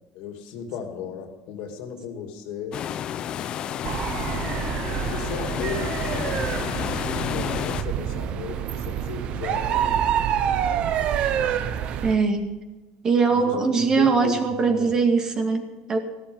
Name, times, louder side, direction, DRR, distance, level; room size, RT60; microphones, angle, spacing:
voice 1, 0.1-2.9 3.5-4.2 5.1-10.2 13.3-14.9, left 6 dB, 70° left, 5 dB, 2.6 m, -36 dB
sound 1, 2.7-7.8, left 10 dB, 40° left, 0.7 m, -30 dB
sound 2, 3.8-12.2, right 9 dB, 50° right, 1.0 m, -27 dB
voice 2, 12.0-12.5 13.0-16.0, right 4 dB, 30° right, 5 dB, 2.3 m, -21 dB
15.5 x 13.0 x 5.6 m, 1.2 s
cardioid pair, 140°, 2 cm